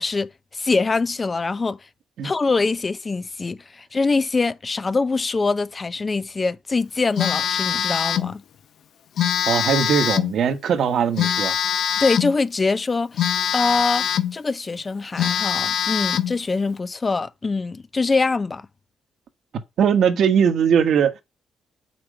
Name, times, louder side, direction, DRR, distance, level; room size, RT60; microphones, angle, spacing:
voice 1, 0.0-1.8 2.2-8.4 12.0-13.3 13.5-18.7, left 3 dB, 30° left, 0.6 m, -24 dB
Telephone, 7.2-8.3 9.2-10.4 11.2-12.4 13.2-14.4 14.8-14.9 15.2-16.4, left 9 dB, 70° left, 0.9 m, -23 dB
voice 2, 9.5-11.6 19.8-21.2, right 7 dB, 65° right, 1.6 m, -20 dB
8.0 x 6.1 x 5.0 m
cardioid pair, 90°, 0 cm